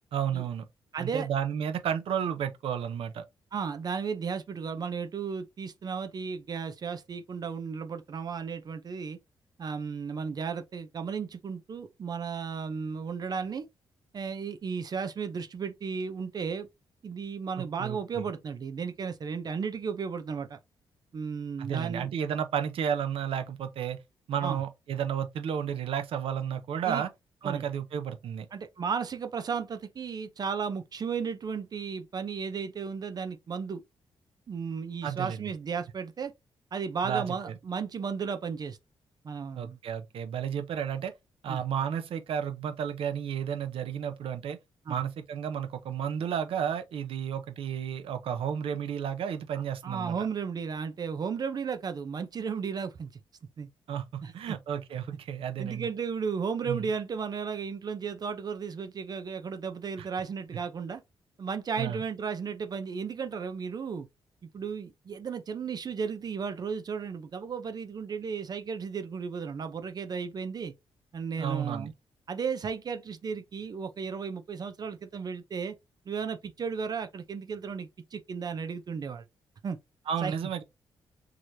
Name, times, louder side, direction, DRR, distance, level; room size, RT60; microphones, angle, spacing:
voice 1, 0.1-0.7 1.0-3.2 17.6-18.2 21.6-24.0 24.3-27.1 27.4-28.5 35.0-35.5 37.0-37.5 39.6-41.1 41.4-44.6 44.9-50.2 53.9-55.9 56.6-56.8 60.0-60.1 61.8-62.0 71.4-71.9 80.1-80.6, right 8 dB, 75° right, 0.8 m, -32 dB
voice 2, 0.9-1.3 3.5-9.2 9.6-13.7 14.1-16.7 17.0-20.6 21.1-22.1 24.4-24.6 26.8-27.1 27.4-27.6 28.5-33.8 34.5-36.3 36.7-38.8 39.2-39.8 41.5-41.6 44.9-45.0 49.8-53.1 53.6-53.7 54.2-54.6 55.6-61.0 61.4-64.1 64.5-70.7 71.1-71.9 72.3-75.7 76.1-79.2 79.6-79.8 80.2-80.3, right 6 dB, 45° right, 0.6 m, -34 dB
4.7 x 3.0 x 2.7 m
cardioid pair, 110°, 9 cm